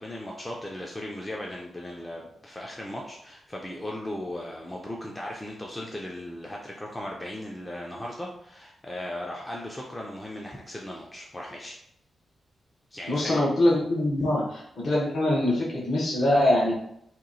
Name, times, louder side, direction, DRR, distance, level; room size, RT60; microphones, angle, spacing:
voice 1, 0.0-11.8 12.9-13.4 14.2-14.3, left 1 dB, 10° left, -2 dB, 0.4 m, -37 dB
voice 2, 13.1-14.4 14.8-16.7, left 1 dB, 50° left, -4 dB, 0.9 m, -23 dB
2.9 x 2.7 x 3.9 m, 0.73 s
wide cardioid pair, 170°, 0 cm